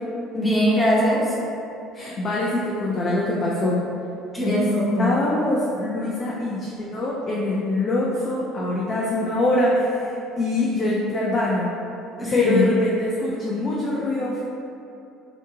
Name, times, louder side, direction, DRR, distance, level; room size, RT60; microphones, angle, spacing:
voice 1, 0.3-1.3 4.3-5.1 12.2-12.7, left 1 dB, 15° left, -6 dB, 0.9 m, -21 dB
voice 2, 1.9-3.8 4.4-4.6 5.0-11.7 12.3-14.4, left 2 dB, 45° left, -5 dB, 0.5 m, -24 dB
3.7 x 2.4 x 2.8 m, 2.7 s
hypercardioid pair, 70°, 0 cm